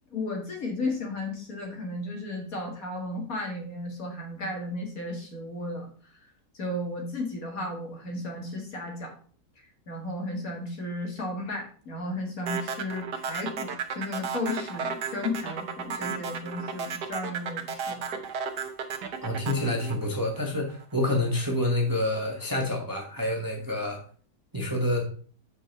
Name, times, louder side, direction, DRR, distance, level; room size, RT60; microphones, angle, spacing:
voice 1, 0.1-5.9 6.5-9.1 9.9-18.0, left 2 dB, 55° left, 1 dB, 2.2 m, -34 dB
sound 1, 12.5-20.8, right 6 dB, 70° right, 1.6 m, -33 dB
voice 2, 19.2-24.0 24.5-25.0, left 1 dB, 15° right, 1 dB, 1.3 m, -28 dB
6.7 x 5.4 x 5.3 m, 0.43 s
omnidirectional pair, 1.8 m